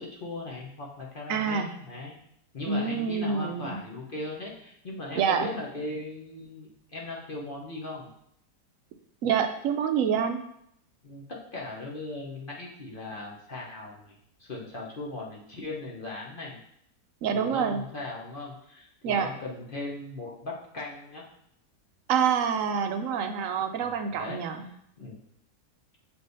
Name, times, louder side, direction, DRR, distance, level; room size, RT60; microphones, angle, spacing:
voice 1, 0.0-2.2 2.5-8.1 11.0-16.6 17.3-21.2 23.8-25.2, left 2 dB, 40° left, -3 dB, 0.9 m, -38 dB
voice 2, 1.3-1.7 2.7-3.8 5.2-5.5 9.2-10.4 17.2-17.8 19.0-19.3 22.1-24.7, right 7 dB, 70° right, 6 dB, 0.8 m, -27 dB
6.9 x 3.4 x 4.0 m, 0.72 s
omnidirectional pair, 1.7 m